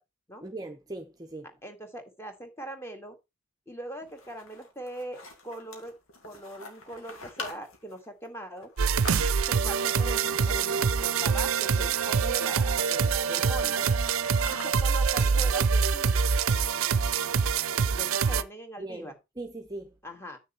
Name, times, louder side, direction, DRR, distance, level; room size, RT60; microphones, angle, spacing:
voice 1, 0.4-1.5 18.8-19.9, right 2 dB, 20° right, 0.8 m, -40 dB
voice 2, 1.6-3.2 3.7-5.9 6.2-8.7 9.5-13.9 14.5-16.4 17.9-19.1 20.0-20.4, right 1 dB, 10° left, 1.8 m, -41 dB
sound 1, 4.0-9.7 10.7-11.2 11.4-11.5 11.8-12.9 13.3-15.9, left 3 dB, 85° left, 2.6 m, -45 dB
sound 2, 8.8-18.4, right 6 dB, 85° right, 0.6 m, -25 dB
8.8 x 6.4 x 4.2 m
head